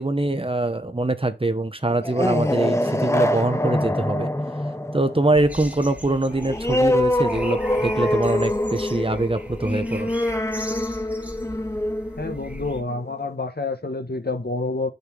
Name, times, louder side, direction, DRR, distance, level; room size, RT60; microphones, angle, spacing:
voice 1, 0.0-4.3 4.9-10.1, right 2 dB, 30° right, 0.9 m, -23 dB
sound 1, 1.9-13.1, left 1 dB, 15° left, 0.8 m, -25 dB
sound 2, 5.3-12.8, equal, 10° right, 1.7 m, -39 dB
voice 2, 12.2-14.9, left 3 dB, 60° left, 1.3 m, -28 dB
6.7 x 3.4 x 6.1 m
wide cardioid pair, 40°, 18 cm